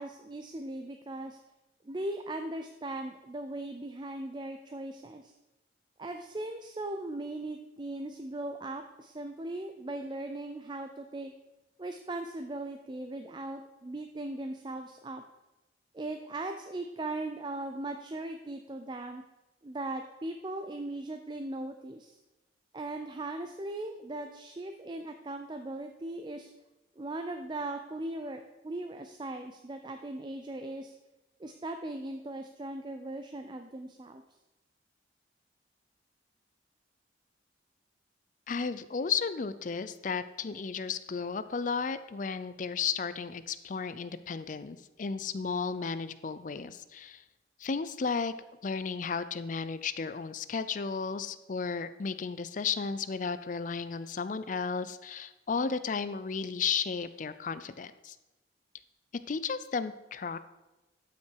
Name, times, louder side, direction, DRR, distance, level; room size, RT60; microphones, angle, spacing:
voice 1, 0.0-1.4 1.8-5.3 6.0-11.3 11.8-15.2 15.9-19.2 19.6-22.2 22.7-26.5 27.0-30.9 31.4-34.2, right 2 dB, 25° right, 6 dB, 0.4 m, -39 dB
voice 2, 38.5-47.2 47.6-48.3 48.6-58.2 59.3-60.4, left 5 dB, 45° left, 13 dB, 0.4 m, -34 dB
12.5 x 5.8 x 4.6 m, 1.1 s
head